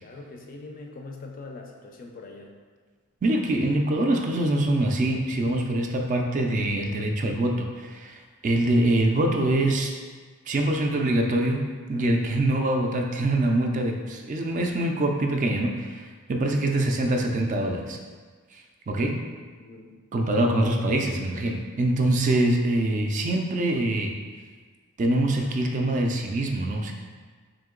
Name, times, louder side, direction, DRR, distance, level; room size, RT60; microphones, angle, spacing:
voice 1, 0.0-2.5 19.6-19.9, left 3 dB, 40° left, 2 dB, 0.4 m, -42 dB
voice 2, 3.2-9.9 10.5-18.0 18.9-19.2 20.1-24.1 25.0-26.9, right 1 dB, 35° right, 2 dB, 0.3 m, -24 dB
3.6 x 2.8 x 3.7 m, 1.5 s
head